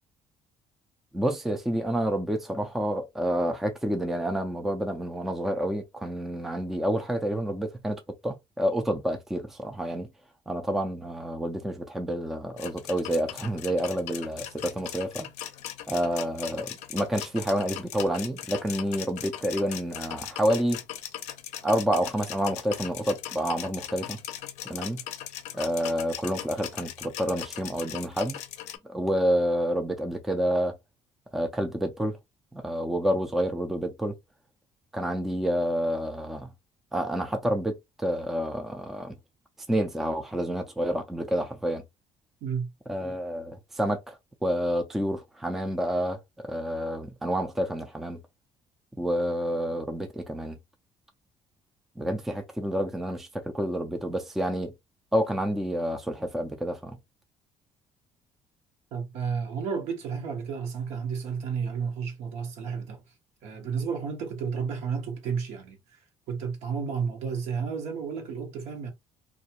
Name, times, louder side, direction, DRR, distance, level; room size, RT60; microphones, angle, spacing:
voice 1, 1.1-10.1 10.5-15.3 15.9-20.8 21.6-24.2 24.6-25.0 25.5-28.4 28.9-30.8 31.3-32.2 32.5-34.1 34.9-36.5 36.9-39.2 39.7-41.8 42.9-44.2 44.4-46.2 46.4-48.2 49.0-50.6 52.0-54.7 55.1-57.0, equal, 5° right, 0.3 m, -29 dB
sound 1, 12.6-28.8, left 12 dB, 80° left, 0.5 m, -39 dB
voice 2, 58.9-63.0 63.4-66.0 66.3-68.9, right 6 dB, 75° right, 1.0 m, -32 dB
2.4 x 2.2 x 2.7 m
cardioid pair, 160°, 11 cm